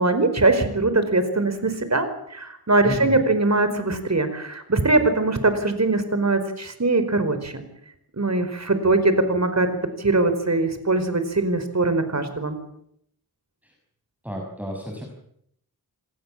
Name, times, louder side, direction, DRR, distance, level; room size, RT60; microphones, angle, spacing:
voice 1, 0.0-7.6 8.2-12.6, right 2 dB, 45° right, 10 dB, 4.8 m, -22 dB
voice 2, 2.8-3.2 14.2-15.1, equal, 5° right, 1 dB, 6.0 m, -31 dB
29.0 x 19.5 x 7.5 m, 0.72 s
wide cardioid pair, 65°, 38 cm